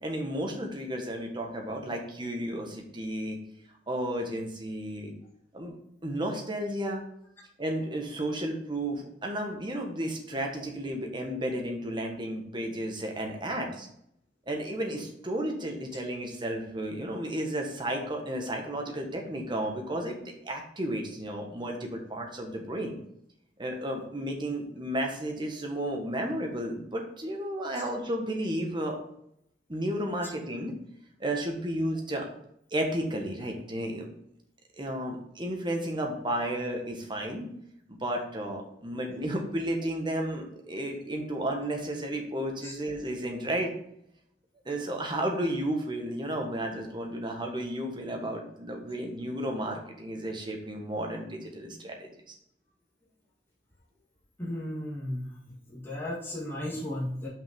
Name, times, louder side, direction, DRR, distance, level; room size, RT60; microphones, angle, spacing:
voice 1, 0.0-3.4 3.9-5.1 5.5-5.8 6.0-7.0 7.6-13.9 14.5-20.2 20.4-22.9 23.6-29.0 29.7-30.7 31.2-32.3 32.7-34.1 34.8-37.5 37.9-43.7 44.6-52.3, right 1 dB, 25° right, 2 dB, 1.6 m, -33 dB
voice 2, 54.4-55.2 55.7-57.3, left 1 dB, 15° left, -5 dB, 1.9 m, -34 dB
5.9 x 5.4 x 5.2 m, 0.72 s
head